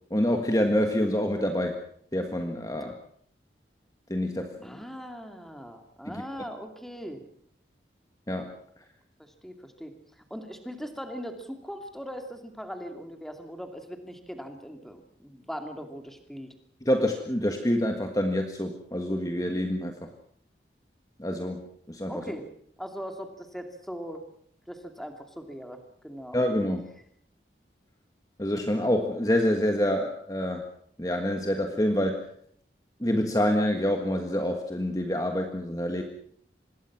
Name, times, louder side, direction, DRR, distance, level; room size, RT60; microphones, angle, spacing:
voice 1, 0.1-1.8 2.1-3.0 4.1-4.8 6.1-6.2 8.3-8.5 16.8-20.1 21.2-22.1 26.3-26.9 28.4-30.6 31.0-32.3 33.0-36.0, left 1 dB, 20° left, 4 dB, 1.6 m, -27 dB
voice 2, 4.6-7.2 9.2-9.9 10.3-16.5 22.1-22.5 22.8-24.2 24.7-26.4, equal, ahead, 5 dB, 2.5 m, -40 dB
25.5 x 20.5 x 6.1 m, 0.63 s
head